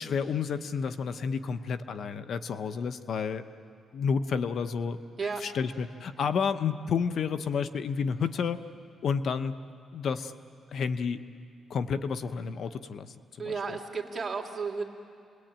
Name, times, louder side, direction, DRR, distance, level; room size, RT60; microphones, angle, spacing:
voice 1, 0.0-3.4 3.9-5.0 5.4-8.6 9.0-9.5 9.9-10.3 10.7-11.2 11.7-13.1 13.4-13.5, left 6 dB, 65° left, 11 dB, 0.9 m, -30 dB
voice 2, 13.4-14.8, right 4 dB, 35° right, 2 dB, 2.9 m, -33 dB
28.5 x 21.5 x 8.9 m, 2.3 s
cardioid pair, 90°, 0 cm